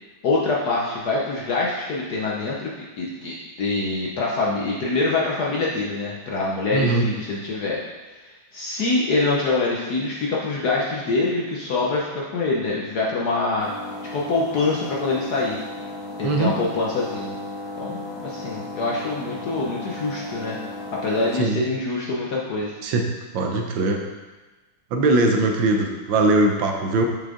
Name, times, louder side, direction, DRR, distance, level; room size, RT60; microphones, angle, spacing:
voice 1, 0.2-2.7 3.0-7.8 8.5-13.7 14.1-15.6 16.2-17.3 17.8-20.6 20.9-22.7, left 3 dB, 60° left, -4 dB, 1.2 m, -25 dB
voice 2, 6.7-7.0 16.2-16.5 21.4-21.6 22.8-23.1 23.3-24.0 24.9-27.1, right 2 dB, 70° right, 2 dB, 1.4 m, -20 dB
sound 1, 13.6-21.4, left 1 dB, 30° left, 0.4 m, -35 dB
7.0 x 5.6 x 3.7 m, 1.2 s
omnidirectional pair, 2.4 m